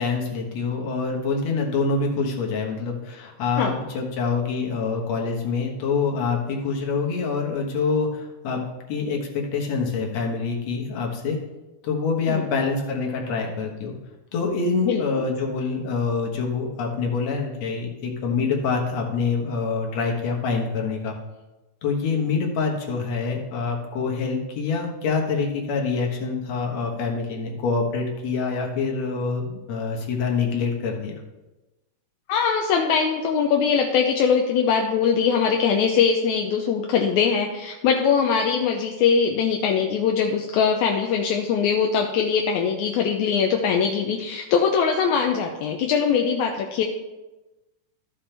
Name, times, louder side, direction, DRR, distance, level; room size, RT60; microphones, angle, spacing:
voice 1, 0.0-8.6 8.9-11.4 11.8-14.0 14.3-21.2 21.8-31.1, left 4 dB, 65° left, 0 dB, 2.4 m, -26 dB
voice 2, 32.3-46.8, left 6 dB, 80° left, 2 dB, 1.9 m, -22 dB
14.0 x 5.9 x 3.3 m, 1.1 s
omnidirectional pair, 3.6 m